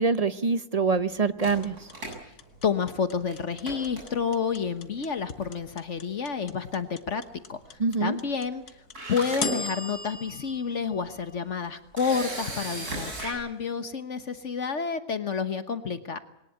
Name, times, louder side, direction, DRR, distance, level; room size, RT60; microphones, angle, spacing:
voice 1, 0.0-1.8 7.8-8.2, right 4 dB, 35° right, 12 dB, 0.7 m, -25 dB
Camera, 1.4-3.0 3.3-3.4 3.7-4.5 5.4-5.7 6.0-6.1 8.5-8.6 8.9-9.7 10.3-10.4 12.0-13.3, right 2 dB, 70° right, 7.7 m, -35 dB
sound 1, 1.6-11.8, left 5 dB, 75° left, 1.9 m, -38 dB
voice 2, 2.6-7.2 7.5-8.6 9.1-16.2, left 6 dB, 50° left, 10 dB, 1.4 m, -29 dB
21.5 x 19.0 x 8.5 m, 0.84 s
omnidirectional pair, 1.7 m